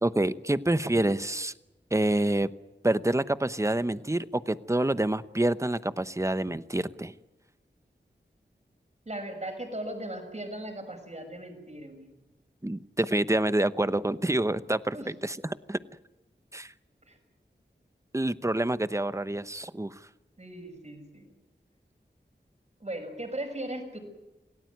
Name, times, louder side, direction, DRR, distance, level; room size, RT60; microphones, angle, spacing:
voice 1, 0.0-1.5 1.9-2.5 2.8-7.1 12.6-15.8 16.5-16.7 18.1-19.9, right 1 dB, 15° right, 14 dB, 0.9 m, -27 dB
voice 2, 9.1-12.1 14.9-15.1 17.1-17.2 20.4-21.3 22.8-24.0, right 1 dB, 40° right, 5 dB, 6.1 m, -38 dB
27.5 x 17.5 x 9.4 m, 1.0 s
wide cardioid pair, 65°, 19 cm